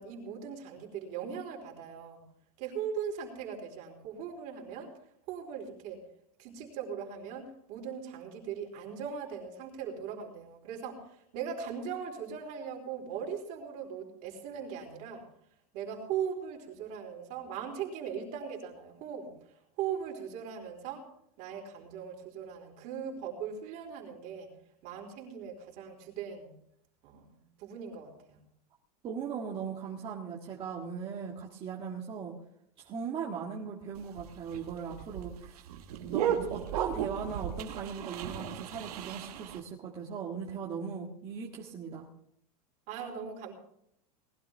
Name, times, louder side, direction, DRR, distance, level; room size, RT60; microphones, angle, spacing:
voice 1, 0.0-2.2 2.6-4.9 5.3-6.0 6.4-15.2 15.7-19.3 19.8-21.0 21.4-24.5 24.8-26.5 27.0-28.4 42.9-43.5, right 7 dB, 50° right, 0 dB, 4.2 m, -39 dB
voice 2, 29.0-32.3 32.8-35.6 36.0-42.1, right 6 dB, 30° right, -2 dB, 1.7 m, -38 dB
sound 1, 34.0-39.6, right 9 dB, 85° right, 1.6 m, -35 dB
20.0 x 12.0 x 3.5 m, 0.73 s
supercardioid pair, 145°, 19 cm